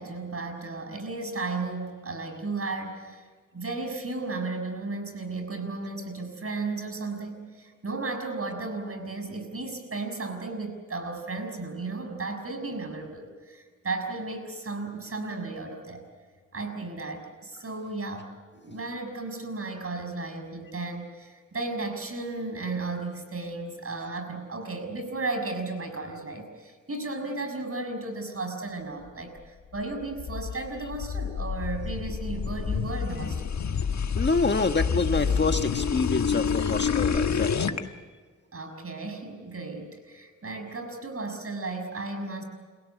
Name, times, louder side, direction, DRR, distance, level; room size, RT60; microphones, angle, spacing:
voice 1, 0.0-3.2 3.5-16.0 16.5-33.4 38.5-42.4, right 3 dB, 50° right, 6 dB, 6.3 m, -34 dB
sound 1, 29.8-37.8, left 6 dB, 65° left, 1.4 m, -28 dB
voice 2, 34.1-37.9, left 3 dB, 35° left, 7 dB, 1.5 m, -27 dB
29.5 x 17.0 x 8.2 m, 1.5 s
cardioid pair, 65°, 30 cm